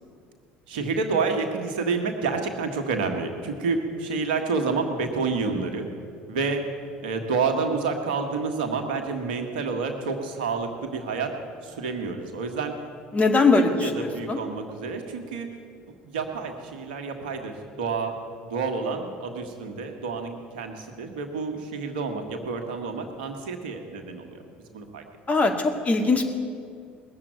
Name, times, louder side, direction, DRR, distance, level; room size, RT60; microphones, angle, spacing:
voice 1, 0.7-5.9 6.3-6.6 7.0-11.3 11.6-12.7 13.8-15.5 15.9-18.1 18.4-24.4 24.7-25.0, right 4 dB, 75° right, 5 dB, 1.6 m, -29 dB
voice 2, 13.1-14.4 25.3-26.3, left 3 dB, 30° left, 3 dB, 2.1 m, -21 dB
19.5 x 7.5 x 9.3 m, 2.3 s
hypercardioid pair, 65°, 5 cm